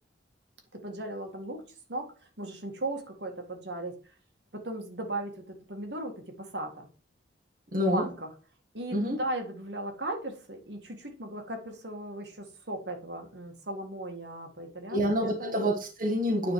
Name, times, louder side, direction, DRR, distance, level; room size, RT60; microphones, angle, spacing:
voice 1, 0.7-1.6 1.9-4.0 4.5-6.9 7.9-8.3 8.7-15.5, right 1 dB, 70° right, 1.9 m, -37 dB
voice 2, 7.7-8.1 8.9-9.2 14.9-16.5, equal, 50° right, 1.5 m, -27 dB
9.7 x 4.3 x 4.6 m
head